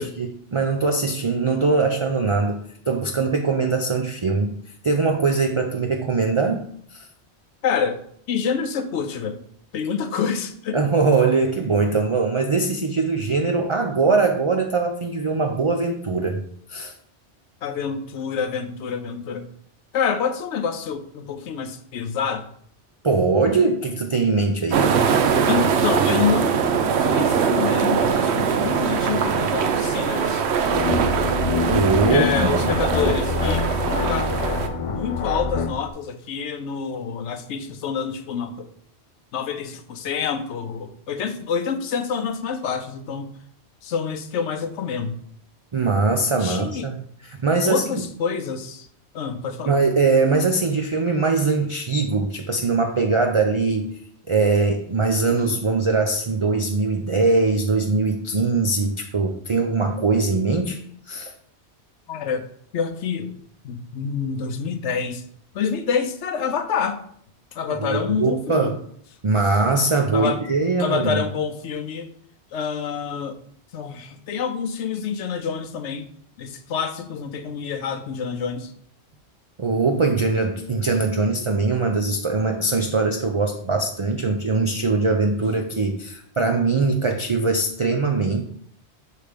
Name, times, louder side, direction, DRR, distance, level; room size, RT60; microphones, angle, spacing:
voice 1, 0.0-4.6 4.8-7.1 10.7-16.4 16.7-16.9 23.0-25.2 31.7-32.7 45.7-47.8 49.6-53.9 54.3-60.8 61.1-61.3 67.8-68.8 69.2-71.2 79.6-88.4, right 3 dB, 40° right, 3 dB, 0.4 m, -21 dB
voice 2, 7.6-8.0 8.3-9.4 9.7-10.8 17.6-19.5 19.9-22.4 25.5-26.7 27.0-30.4 32.1-33.7 34.1-34.3 34.7-38.7 39.3-43.3 43.8-45.1 46.4-46.9 47.6-48.9 49.1-49.7 62.1-62.4 62.7-63.3 63.6-65.2 65.5-67.0 67.5-68.7 70.1-70.4 70.8-72.1 72.5-73.4 73.7-76.1 76.4-78.7, left 6 dB, 85° left, 8 dB, 1.0 m, -27 dB
sound 1, 24.7-34.7, right 6 dB, 75° right, 0.9 m, -22 dB
sound 2, 30.6-35.8, left 4 dB, 55° left, 0.3 m, -25 dB
6.5 x 3.3 x 5.0 m, 0.63 s
omnidirectional pair, 1.2 m